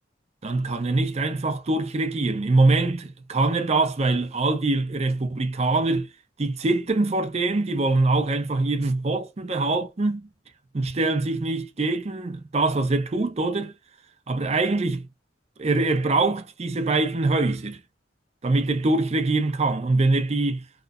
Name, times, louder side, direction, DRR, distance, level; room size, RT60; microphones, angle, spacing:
voice 1, 0.4-6.1 6.4-10.3 10.7-13.7 14.3-15.1 15.6-17.8 18.4-20.6, right 2 dB, 35° right, 0.5 m, -23 dB
2.9 x 2.0 x 2.3 m
head